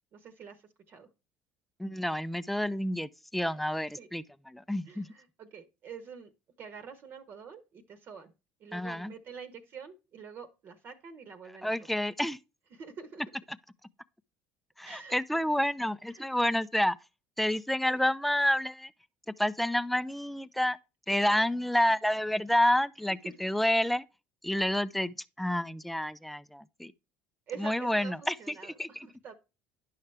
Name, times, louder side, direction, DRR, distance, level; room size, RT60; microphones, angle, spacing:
voice 1, 0.1-1.1 3.4-3.6 4.0-4.1 4.9-6.3 6.6-8.3 8.6-11.9 12.7-13.2 14.8-15.4 16.1-16.2 17.8-18.0 21.2-21.3 23.2-23.5 27.5-29.3, right 6 dB, 50° right, 1.1 m, -47 dB
voice 2, 1.8-5.1 8.7-9.1 11.6-12.4 14.8-17.0 17.4-18.9 19.4-20.8 21.1-24.0 24.4-26.9 27.6-28.3 28.6-29.1, left 1 dB, ahead, 0.4 m, -29 dB
10.5 x 5.6 x 3.3 m
supercardioid pair, 75°, 4 cm